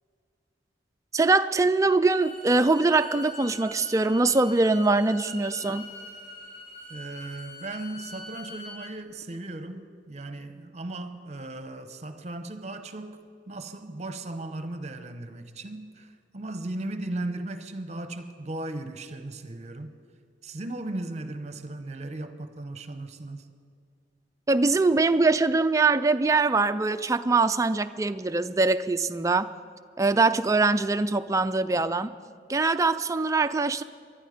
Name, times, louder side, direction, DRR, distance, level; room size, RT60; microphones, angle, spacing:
voice 1, 1.1-5.9 24.5-29.5 30.0-32.1 32.5-33.8, right 3 dB, 20° right, 0.4 m, -23 dB
Bowed string instrument, 2.0-8.8, left 1 dB, 60° left, 3.9 m, -43 dB
voice 2, 6.9-19.9 20.4-23.5, right 2 dB, 40° right, 0.9 m, -37 dB
23.5 x 11.5 x 5.1 m
head